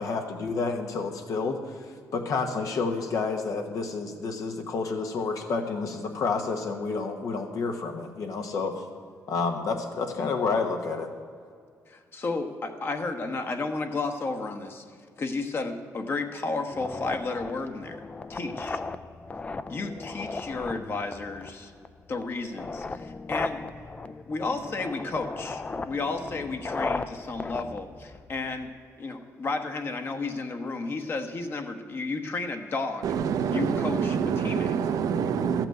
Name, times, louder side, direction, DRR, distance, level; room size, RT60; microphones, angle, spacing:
voice 1, 0.0-1.8 2.1-8.8 9.3-11.1, left 4 dB, 65° left, 4 dB, 1.0 m, -29 dB
voice 2, 11.9-14.8 15.2-18.0 18.3-18.8 19.7-21.7 22.1-23.6 24.3-28.7 29.0-33.1 33.5-34.2 34.4-34.7, left 3 dB, 40° left, 6 dB, 1.1 m, -32 dB
sound 1, 16.7-28.7, left 3 dB, 20° left, 0.4 m, -36 dB
voice 3, 33.0-35.7, right 7 dB, 75° right, 10 dB, 0.8 m, -26 dB
13.5 x 6.0 x 8.9 m, 2.2 s
cardioid pair, 130°, 6 cm